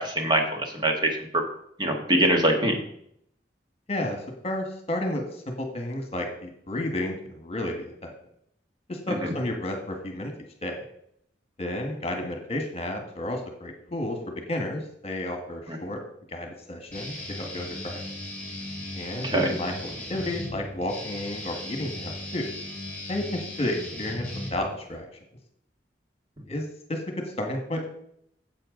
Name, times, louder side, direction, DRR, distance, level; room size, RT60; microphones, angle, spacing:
voice 1, 0.0-1.4 1.8-2.8 9.1-9.3 15.7-15.8 19.2-19.5, right 1 dB, 25° right, 3 dB, 1.6 m, -24 dB
voice 2, 4.4-5.2 5.6-7.8 8.0-8.1 8.9-10.3 10.6-10.8 11.6-16.0 16.3-18.0 18.9-22.5 23.1-24.2 24.5-25.0 26.5-26.6 26.9-27.0 27.4-27.9, left 1 dB, 35° left, 4 dB, 1.6 m, -31 dB
Guitar, 16.9-24.9, left 1 dB, 10° left, 3.2 m, -37 dB
10.5 x 7.9 x 3.9 m, 0.69 s
head